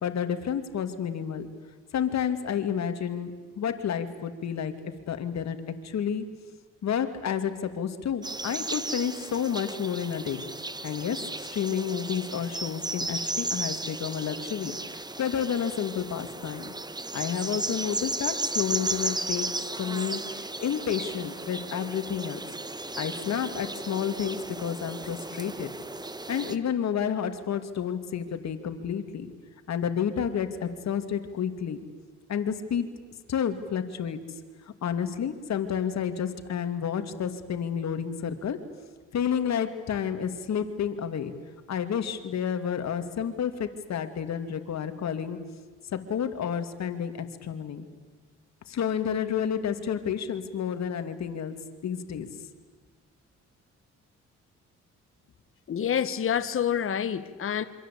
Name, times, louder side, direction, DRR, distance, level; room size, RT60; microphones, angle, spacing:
voice 1, 0.0-1.5 1.9-4.7 5.1-5.6 5.8-6.2 6.8-10.4 10.8-11.2 11.5-16.7 17.1-19.5 19.8-22.4 23.0-25.7 26.3-29.3 29.7-31.8 32.3-32.9 33.3-34.2 34.8-38.6 39.1-41.3 41.7-45.4 45.9-47.9 48.7-51.5 51.8-52.3, left 8 dB, 60° left, 9 dB, 2.5 m, -30 dB
sound 1, 8.2-26.6, right 2 dB, 15° right, 1.4 m, -35 dB
voice 2, 55.7-57.6, left 8 dB, 45° left, 11 dB, 1.3 m, -27 dB
27.5 x 25.5 x 8.5 m, 1.4 s
cardioid pair, 90°, 30 cm